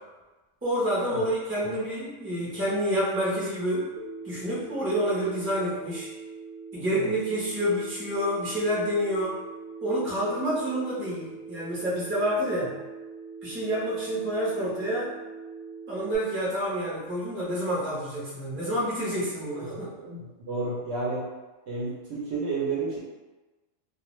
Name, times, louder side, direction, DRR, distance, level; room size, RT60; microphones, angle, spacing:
voice 1, 0.6-3.9 4.2-6.1 6.7-9.4 9.8-12.7 13.4-15.1 15.9-19.7, equal, 10° right, -8 dB, 0.6 m, -28 dB
Telephone, 4.0-16.2, right 4 dB, 85° right, 1.1 m, -42 dB
voice 2, 20.0-21.3 21.7-23.0, right 3 dB, 60° right, -7 dB, 0.9 m, -31 dB
2.4 x 2.3 x 3.0 m, 1.2 s
omnidirectional pair, 1.4 m